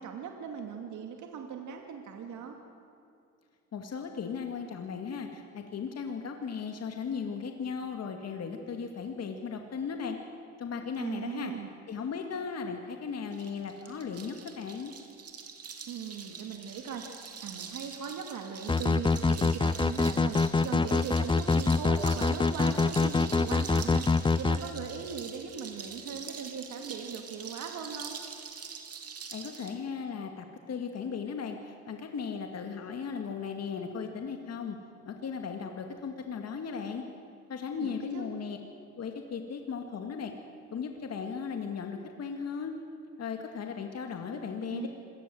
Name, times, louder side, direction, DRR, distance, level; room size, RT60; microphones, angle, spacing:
voice 1, 0.0-2.6 11.0-11.7 15.9-17.1 17.4-24.0 24.3-28.2 37.7-38.3 44.7-44.9, right 6 dB, 75° right, 3 dB, 2.5 m, -39 dB
voice 2, 3.7-10.2 10.6-11.5 11.9-14.9 29.3-34.8 35.0-37.0 37.5-38.6 39.0-40.3 40.7-42.7 43.2-44.9, left 6 dB, 55° left, 4 dB, 2.2 m, -36 dB
sound 1, 13.3-29.7, right 6 dB, 55° right, 2.9 m, -44 dB
sound 2, 18.7-24.6, left 4 dB, 15° left, 0.7 m, -25 dB
26.0 x 19.0 x 7.9 m, 2.6 s
cardioid pair, 90°, 30 cm